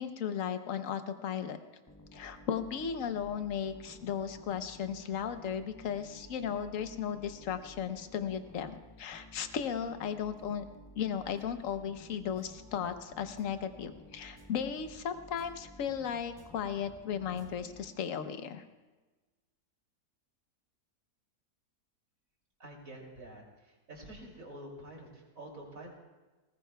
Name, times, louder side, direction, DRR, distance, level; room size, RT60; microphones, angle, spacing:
voice 1, 0.0-1.6 2.1-10.6 11.0-18.6, left 8 dB, 60° left, 9 dB, 1.1 m, -36 dB
sound 1, 1.9-18.3, equal, 15° left, 0.9 m, -55 dB
voice 2, 22.6-25.9, right 1 dB, 55° right, -1 dB, 3.2 m, -48 dB
19.5 x 19.0 x 2.3 m, 1.2 s
omnidirectional pair, 1.7 m